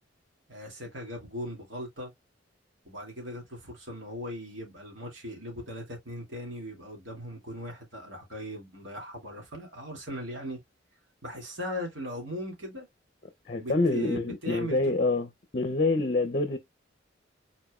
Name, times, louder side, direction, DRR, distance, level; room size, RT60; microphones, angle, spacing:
voice 1, 0.5-2.1 2.8-10.6 11.2-12.9 13.6-14.8, left 1 dB, 70° right, 2.6 m, -39 dB
voice 2, 13.5-16.6, left 2 dB, 40° left, 0.7 m, -26 dB
5.0 x 4.3 x 2.4 m
head